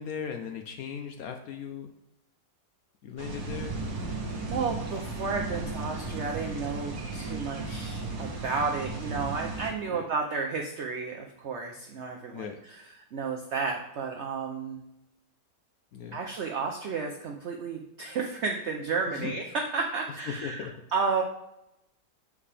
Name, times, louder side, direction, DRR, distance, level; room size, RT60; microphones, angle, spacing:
voice 1, 0.0-1.9 3.0-3.8 9.9-10.1 12.3-12.6 15.9-16.2 19.1-19.3 20.3-20.7, left 7 dB, 70° left, 5 dB, 0.9 m, -37 dB
sound 1, 3.2-9.7, right 3 dB, 60° right, 1.5 m, -35 dB
voice 2, 4.5-12.8 13.1-14.8 16.1-21.2, right 5 dB, 75° right, 2 dB, 0.6 m, -32 dB
7.2 x 4.7 x 3.3 m, 0.86 s
omnidirectional pair, 1.9 m